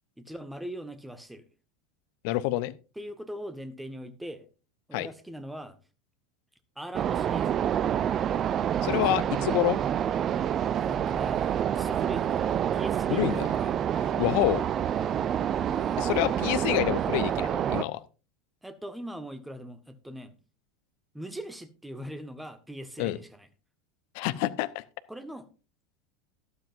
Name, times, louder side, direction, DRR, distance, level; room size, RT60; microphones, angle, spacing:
voice 1, 0.2-1.4 2.9-4.5 4.9-5.8 6.7-7.9 9.0-9.6 10.3-13.9 15.7-16.3 18.6-20.4 21.1-23.5 25.1-25.5, right 1 dB, 5° right, 11 dB, 1.3 m, -41 dB
voice 2, 2.2-2.7 4.9-5.1 8.8-9.8 13.1-13.5 14.2-14.6 16.0-18.0 23.0-23.2 24.1-24.8, left 16 dB, 55° left, 15 dB, 0.7 m, -27 dB
sound 1, 6.9-17.8, right 9 dB, 35° right, 0.4 m, -27 dB
12.5 x 12.0 x 2.5 m, 0.33 s
figure-of-eight pair, 80°, 0 cm